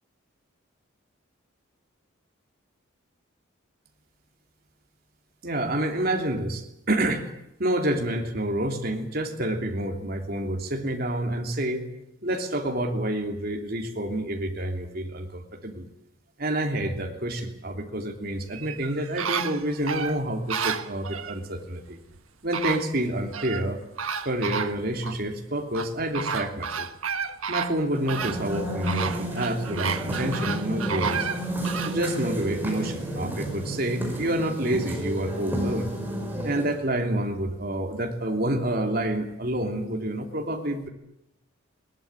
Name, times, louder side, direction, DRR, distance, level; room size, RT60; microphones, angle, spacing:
voice 1, 5.4-7.3 7.6-11.9 12.2-15.9 16.4-22.0 22.4-23.8 24.2-26.9 27.5-31.3 31.8-35.9 36.4-40.9, right 1 dB, 45° right, 3 dB, 3.2 m, -28 dB
sound 1, 18.5-21.4 22.1-22.2 22.5-23.7 24.0-25.2 25.7-32.0 32.5-32.6, right 6 dB, 90° right, 1.4 m, -31 dB
sound 2, 27.9-36.9, equal, 10° right, 5.4 m, -32 dB
21.5 x 19.0 x 8.9 m, 0.84 s
head